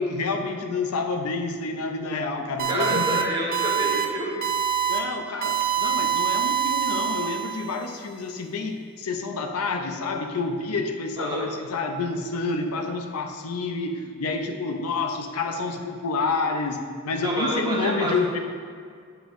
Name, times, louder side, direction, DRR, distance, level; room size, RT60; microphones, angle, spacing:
voice 1, 0.0-3.3 4.9-18.4, left 3 dB, 85° left, 5 dB, 0.5 m, -28 dB
voice 2, 2.6-4.4 11.2-11.5 17.2-18.1, right 1 dB, 20° right, -4 dB, 1.1 m, -28 dB
sound 1, 2.6-3.2 3.5-4.1 4.4-5.0 5.4-7.7, right 9 dB, 40° right, 0.7 m, -25 dB
8.9 x 5.1 x 2.6 m, 2.1 s
head